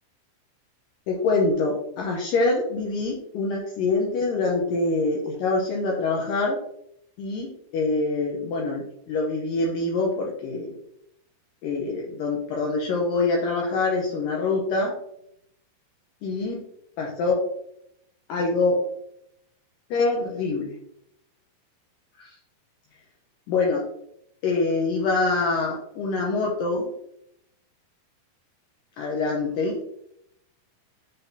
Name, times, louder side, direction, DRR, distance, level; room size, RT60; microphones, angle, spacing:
voice 1, 1.1-6.6 7.2-10.7 11.6-15.0 16.2-16.6 17.0-17.4 18.3-18.8 19.9-20.7 22.2-22.3 23.5-23.8 24.4-26.9 29.0-29.8, left 3 dB, 75° left, -2 dB, 2.2 m, -25 dB
9.5 x 3.9 x 2.7 m, 0.75 s
omnidirectional pair, 4.5 m